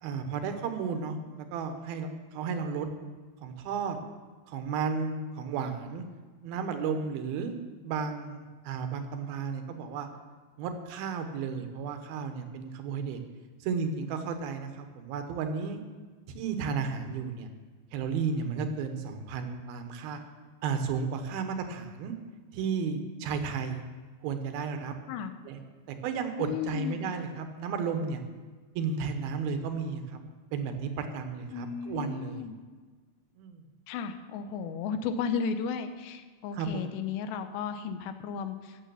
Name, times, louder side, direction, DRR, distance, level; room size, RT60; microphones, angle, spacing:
voice 1, 0.0-2.9 3.4-4.0 4.5-6.0 6.4-10.1 10.6-13.2 13.6-15.8 16.3-17.5 17.9-20.2 20.6-22.1 22.5-23.8 24.2-24.9 25.5-25.6 25.9-28.2 28.8-30.2 30.5-32.5 33.4-33.6 36.5-36.9, right 5 dB, 70° right, 7 dB, 2.6 m, -33 dB
voice 2, 26.4-27.0 31.5-32.6 33.9-38.9, left 6 dB, 85° left, 8 dB, 2.9 m, -34 dB
15.0 x 7.4 x 6.9 m, 1.4 s
omnidirectional pair, 5.0 m